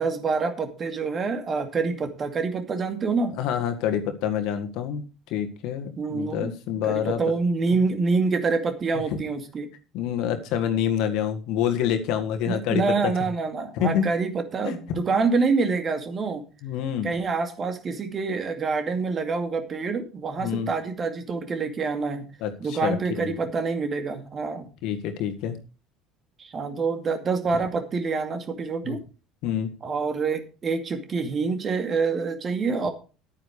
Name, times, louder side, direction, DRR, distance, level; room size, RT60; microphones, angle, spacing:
voice 1, 0.0-3.3 6.0-6.5 6.9-9.7 12.5-16.4 17.0-22.3 22.6-24.7 26.4-29.0 29.8-32.9, right 4 dB, 35° right, 7 dB, 2.3 m, -26 dB
voice 2, 3.3-5.0 5.3-7.2 7.7-7.8 9.1-9.2 9.9-13.1 13.8-14.1 14.6-15.1 16.6-17.1 20.4-20.7 22.4-23.3 24.8-25.6 28.8-29.0 29.4-29.7, left 9 dB, 60° left, 7 dB, 1.8 m, -27 dB
10.5 x 9.4 x 4.9 m, 0.34 s
figure-of-eight pair, 65°, 0 cm